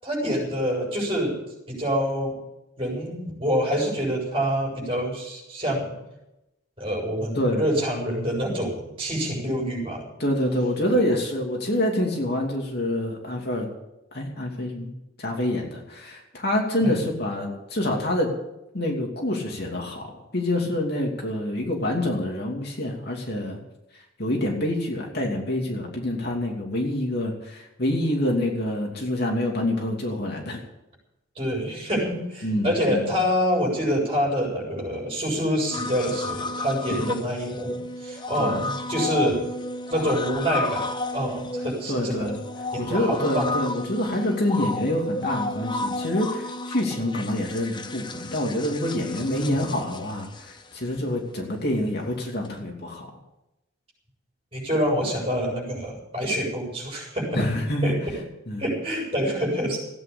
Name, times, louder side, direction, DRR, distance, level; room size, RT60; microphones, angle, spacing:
voice 1, 0.0-1.4 1.7-2.4 2.8-5.9 6.8-10.0 10.9-11.0 16.8-17.0 31.4-37.7 38.0-39.5 39.9-40.9 41.1-42.3 42.7-43.7 49.3-49.6 54.5-57.4 57.8-58.0 58.6-59.8, equal, 25° right, -3 dB, 7.2 m, -26 dB
voice 2, 10.2-13.7 14.1-14.9 15.2-18.3 18.7-23.6 24.2-30.6 32.4-33.1 37.0-37.1 38.4-38.6 41.9-42.4 42.8-53.1 57.3-57.9 58.5-58.6, left 1 dB, 50° left, 0 dB, 2.8 m, -26 dB
sound 1, 35.7-51.0 52.5-52.6, left 2 dB, 20° left, 0.7 m, -32 dB
16.0 x 9.4 x 8.6 m, 0.92 s
head